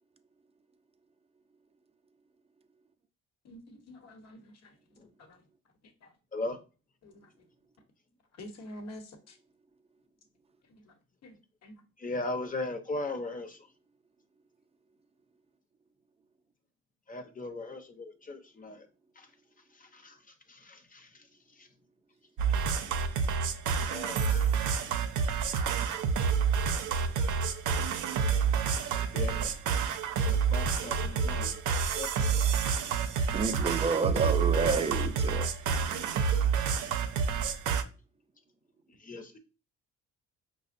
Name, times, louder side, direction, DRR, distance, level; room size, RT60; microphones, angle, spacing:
voice 1, 3.4-4.8 5.2-5.4 6.0-6.1 7.0-7.4 8.3-9.4 10.7-10.9 11.2-11.8, left 1 dB, 60° left, 1.0 m, -48 dB
voice 2, 12.0-13.6 17.1-18.9 19.2-19.3 19.7-21.3 21.5-21.7 23.8-24.5 28.9-29.6 30.2-32.5 39.0-39.4, left 2 dB, 25° left, 0.7 m, -39 dB
sound 1, 22.4-37.8, right 6 dB, 80° right, 0.5 m, -28 dB
voice 3, 33.3-35.5, right 5 dB, 20° right, 0.4 m, -29 dB
5.0 x 2.1 x 2.5 m
cardioid pair, 90°, 30 cm